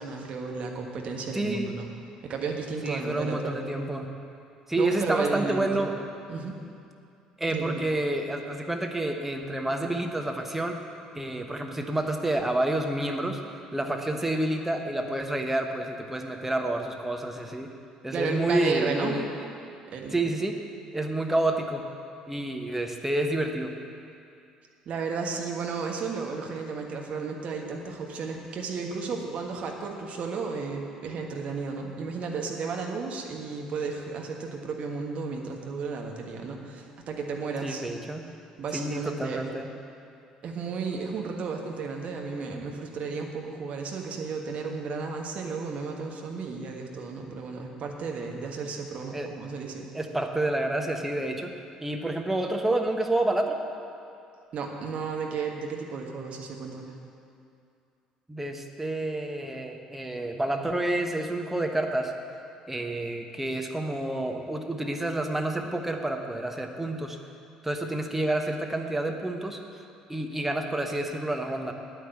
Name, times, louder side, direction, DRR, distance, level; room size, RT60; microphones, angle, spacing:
voice 1, 0.0-1.8 2.2-3.6 4.8-5.9 6.3-6.6 7.5-7.8 18.1-19.2 19.9-20.2 24.8-37.8 38.6-39.4 40.4-49.8 54.5-57.0, right 4 dB, 45° right, 1 dB, 1.5 m, -33 dB
voice 2, 1.3-1.7 2.8-4.1 4.7-5.9 7.4-10.8 11.1-13.4 13.7-17.7 18.0-19.2 20.1-20.6 20.9-21.8 22.3-23.7 37.6-38.3 38.7-39.7 49.1-49.3 49.9-51.5 51.8-53.6 58.3-62.1 62.7-67.2 67.6-69.6 70.1-71.7, right 1 dB, 10° right, 3 dB, 1.3 m, -29 dB
9.5 x 9.2 x 7.9 m, 2.5 s
figure-of-eight pair, 55°, 3 cm